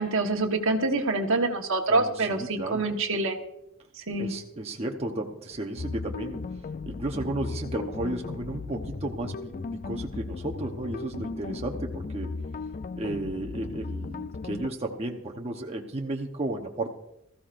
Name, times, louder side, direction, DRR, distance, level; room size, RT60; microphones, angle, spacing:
voice 1, 0.0-3.4 3.9-4.3, right 2 dB, 65° right, 4 dB, 1.3 m, -26 dB
voice 2, 1.9-2.8 4.2-6.5 6.9-12.3 12.9-16.9, right 1 dB, 30° right, 1 dB, 1.0 m, -33 dB
sound 1, 5.8-14.7, left 4 dB, 40° left, 0.4 m, -36 dB
20.0 x 14.5 x 2.6 m, 0.82 s
head